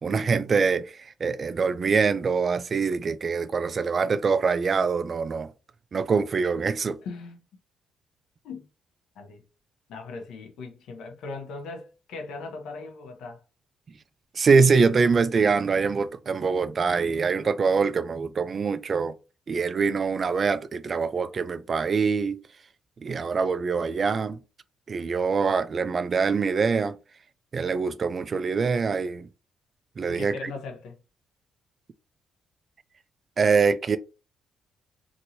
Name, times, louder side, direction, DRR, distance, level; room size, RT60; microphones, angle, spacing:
voice 1, 0.0-0.9 1.2-5.5 5.9-7.0 14.4-19.1 19.5-22.4 23.0-24.4 24.9-27.0 27.5-29.3 30.0-30.5 33.4-34.0, right 5 dB, 40° right, 0.3 m, -24 dB
voice 2, 7.0-7.4 8.4-8.7 9.1-9.4 9.9-13.4 30.1-31.0, left 4 dB, 80° left, 0.8 m, -39 dB
3.0 x 2.6 x 2.7 m
cardioid pair, 90°, 0 cm